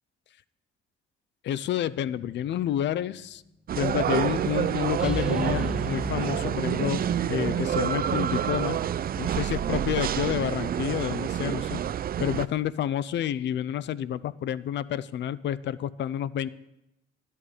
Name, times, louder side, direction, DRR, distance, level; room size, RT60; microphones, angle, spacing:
voice 1, 1.4-3.4 3.8-8.8 9.1-11.8 12.2-16.5, left 11 dB, 65° left, 18 dB, 0.5 m, -29 dB
sound 1, 2.2-2.7 5.0-8.8, left 1 dB, 5° right, 1.1 m, -35 dB
sound 2, 3.7-12.5, right 10 dB, 50° right, 0.5 m, -28 dB
13.0 x 11.0 x 5.0 m, 0.87 s
cardioid pair, 90°, 20 cm